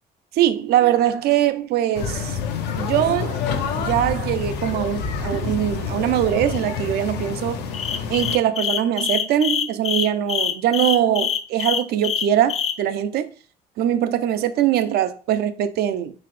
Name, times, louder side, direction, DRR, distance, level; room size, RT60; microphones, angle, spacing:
voice 1, 0.3-2.4 2.8-3.4 3.7-7.6 8.1-13.2 13.8-16.1, right 11 dB, 70° right, 0.5 m, -22 dB
sound 1, 1.9-8.4, left 5 dB, 80° left, 0.6 m, -28 dB
sound 2, 7.7-12.8, left 8 dB, 40° left, 0.4 m, -24 dB
4.0 x 2.8 x 3.1 m
cardioid pair, 110°, 17 cm